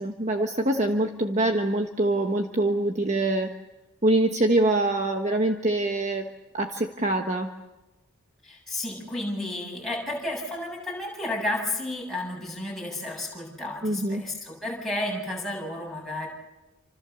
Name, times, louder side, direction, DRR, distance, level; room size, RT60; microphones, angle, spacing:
voice 1, 0.0-3.5 4.0-6.3 6.5-7.5 13.8-14.2, right 2 dB, 30° right, 4 dB, 1.2 m, -24 dB
voice 2, 8.4-16.3, left 1 dB, ahead, -3 dB, 7.6 m, -32 dB
28.5 x 26.5 x 7.0 m, 1.1 s
head